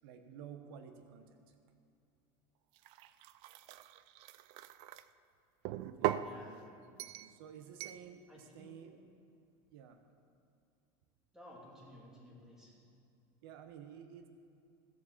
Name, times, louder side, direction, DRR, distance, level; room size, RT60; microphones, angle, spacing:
voice 1, 0.0-1.5 5.7-6.1 7.2-9.0 9.7-10.0 13.4-14.3, right 8 dB, 75° right, 7 dB, 1.0 m, -52 dB
sound 1, 2.8-5.0 5.6-6.3 7.0-7.3 7.8-8.0, right 13 dB, 50° right, 0.4 m, -39 dB
voice 2, 6.1-6.7 8.3-8.8 11.3-12.7, left 1 dB, 5° right, -4 dB, 2.4 m, -55 dB
15.5 x 7.2 x 7.3 m, 2.6 s
cardioid pair, 170°, 12 cm